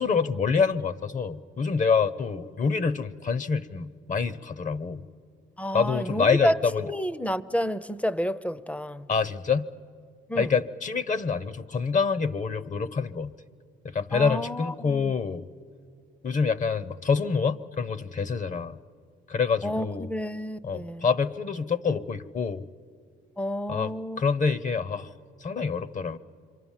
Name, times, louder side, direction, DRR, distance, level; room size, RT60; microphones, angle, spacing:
voice 1, 0.0-5.0 5.7-6.8 9.1-9.7 10.3-13.3 13.8-15.5 16.2-18.8 19.3-20.1 20.6-22.6 23.7-25.1 25.4-26.2, left 5 dB, 40° left, 0.7 m, -26 dB
voice 2, 5.6-6.6 6.8-9.1 10.3-10.5 14.1-15.1 19.6-21.1 23.4-24.2, equal, 5° left, 0.6 m, -30 dB
27.0 x 24.0 x 7.3 m
cardioid pair, 90°, 20 cm